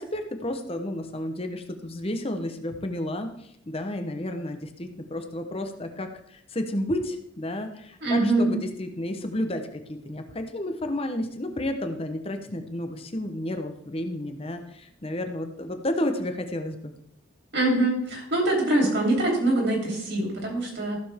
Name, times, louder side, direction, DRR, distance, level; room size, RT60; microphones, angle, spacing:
voice 1, 0.0-3.3 3.7-16.9, left 1 dB, 25° left, 6 dB, 0.9 m, -31 dB
voice 2, 8.0-8.5 17.5-21.0, right 2 dB, 55° right, -1 dB, 3.3 m, -24 dB
14.5 x 6.9 x 3.5 m, 0.72 s
head